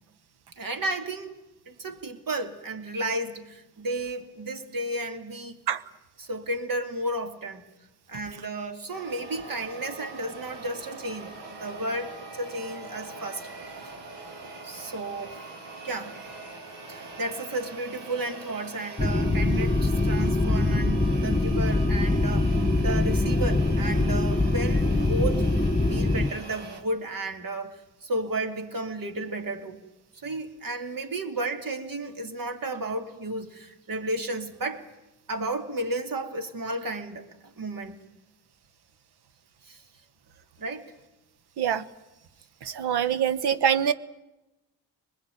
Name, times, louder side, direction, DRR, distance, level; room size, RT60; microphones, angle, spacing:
voice 1, 0.6-1.3 1.7-5.6 6.2-7.6 8.1-13.5 13.8-13.9 14.6-15.4 15.8-16.2 16.9-22.5 22.8-25.5 25.9-29.8 30.2-34.8 35.3-38.0 39.6-39.8 40.6-40.9 43.1-43.2, right 2 dB, 55° right, 6 dB, 2.9 m, -33 dB
sound 1, 8.9-26.8, right 3 dB, 85° right, 2.9 m, -42 dB
sound 2, 19.0-26.3, left 2 dB, 10° left, 1.3 m, -23 dB
voice 2, 42.6-43.9, right 9 dB, 70° right, 14 dB, 1.2 m, -24 dB
24.5 x 20.5 x 9.3 m, 1.0 s
supercardioid pair, 45°, 41 cm